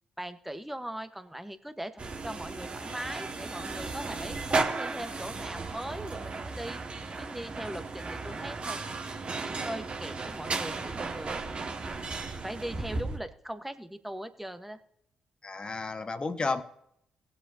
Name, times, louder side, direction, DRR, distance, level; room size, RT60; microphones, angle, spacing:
voice 1, 0.2-8.8 9.6-11.4 12.1-14.8, right 1 dB, 5° right, 9 dB, 1.3 m, -40 dB
sound 1, 2.0-13.2, right 3 dB, 40° right, 1.8 m, -35 dB
voice 2, 15.4-16.6, left 3 dB, 35° left, 10 dB, 1.3 m, -32 dB
19.5 x 7.6 x 2.8 m, 0.76 s
hypercardioid pair, 40°, 3 cm